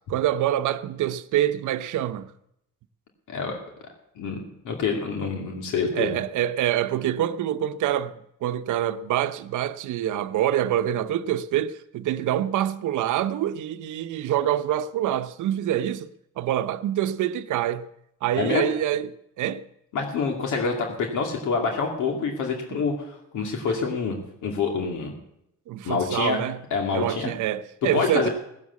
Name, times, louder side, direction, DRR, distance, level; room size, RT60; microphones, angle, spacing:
voice 1, 0.1-2.3 5.9-8.1 8.4-16.1 16.4-17.8 18.2-19.1 19.4-19.6 22.7-22.8 25.7-26.6 26.9-28.3, right 11 dB, 80° right, 0.9 m, -26 dB
voice 2, 3.3-3.6 4.2-6.2 18.4-18.7 19.9-25.1 25.8-26.4 26.7-27.3 27.9-28.3, left 5 dB, 80° left, 2.5 m, -27 dB
18.0 x 7.6 x 8.4 m
cardioid pair, 90°, 30 cm